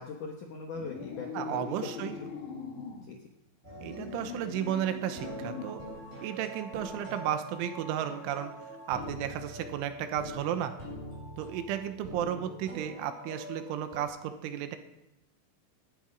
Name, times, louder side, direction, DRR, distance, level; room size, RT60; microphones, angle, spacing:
voice 1, 0.0-2.3 3.0-3.2, left 5 dB, 75° left, 2 dB, 1.9 m, -41 dB
sound 1, 0.7-3.1 3.6-5.9, left 5 dB, 50° left, 2.9 m, -41 dB
voice 2, 1.3-2.2 3.8-5.8 6.2-8.5 8.9-10.8 11.4-14.8, right 10 dB, 85° right, 9 dB, 3.5 m, -33 dB
sound 2, 3.6-14.0, right 1 dB, 10° right, 7.1 m, -44 dB
18.5 x 12.0 x 5.4 m, 0.91 s
omnidirectional pair, 5.5 m